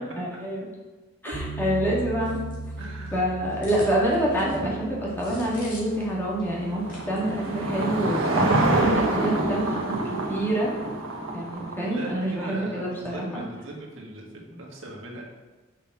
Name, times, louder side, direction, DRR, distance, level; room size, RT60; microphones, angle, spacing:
voice 1, 0.2-0.7 1.2-2.4 3.1-10.7 11.3-13.4, right 1 dB, 10° left, -5 dB, 1.8 m, -27 dB
voice 2, 1.2-1.7 2.8-3.2 4.6-4.7 11.8-15.3, right 1 dB, 70° right, -2 dB, 1.7 m, -39 dB
sound 1, 1.3-9.5, right 2 dB, 25° left, 2.1 m, -39 dB
sound 2, 2.2-6.1 6.4-6.5 6.9-7.5 7.8-8.0, left 1 dB, 40° left, 2.2 m, -46 dB
Car passing by / Engine, 5.9-12.4, right 2 dB, 90° right, 1.2 m, -27 dB
6.6 x 5.4 x 5.9 m, 1.3 s
head